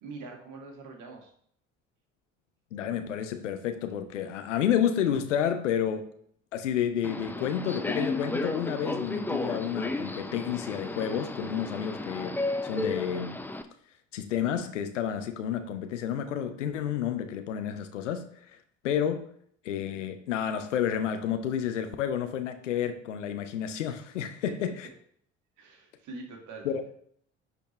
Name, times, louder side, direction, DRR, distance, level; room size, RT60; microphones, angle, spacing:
voice 1, 0.0-1.3 24.5-24.6 25.6-26.7, right 3 dB, 55° right, 1 dB, 2.0 m, -43 dB
voice 2, 2.7-6.1 6.5-12.4 12.6-13.4 14.1-18.3 18.8-19.2 19.6-24.9 26.6-26.8, left 9 dB, 80° left, 8 dB, 0.8 m, -30 dB
Subway metro underground, 7.0-13.6, left 2 dB, 5° left, 0.6 m, -33 dB
10.5 x 4.2 x 3.2 m, 0.63 s
figure-of-eight pair, 55°, 36 cm